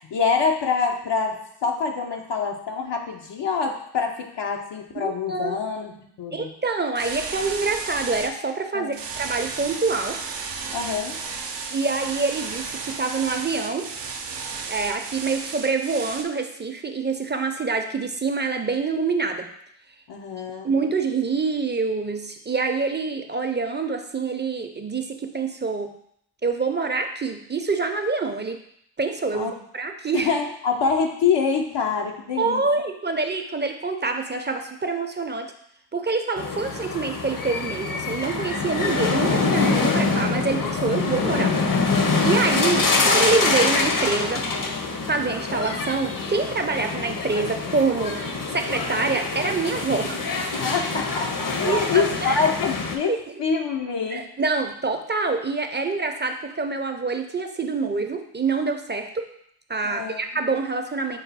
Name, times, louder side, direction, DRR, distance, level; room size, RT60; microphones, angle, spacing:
voice 1, 0.1-6.5 8.7-9.0 10.7-11.2 20.1-20.7 29.3-29.5 30.1-32.7 50.6-54.2 59.8-60.2, left 5 dB, 85° left, 2 dB, 0.7 m, -25 dB
voice 2, 5.0-5.6 6.3-10.2 11.7-13.9 14.7-19.5 20.6-25.9 26.4-28.6 29.0-30.3 32.4-35.5 35.9-41.5 41.8-44.4 45.1-48.2 48.5-50.2 50.6-50.7 51.6-52.4 53.1-53.2 54.1-59.3 59.7-61.2, right 4 dB, 25° right, 6 dB, 0.5 m, -26 dB
sound 1, 7.0-8.3 8.9-16.2, right 4 dB, 85° right, 0.6 m, -33 dB
sound 2, 36.4-53.0, left 3 dB, 50° left, 0.7 m, -25 dB
5.4 x 2.2 x 4.0 m, 0.70 s
cardioid pair, 50°, 41 cm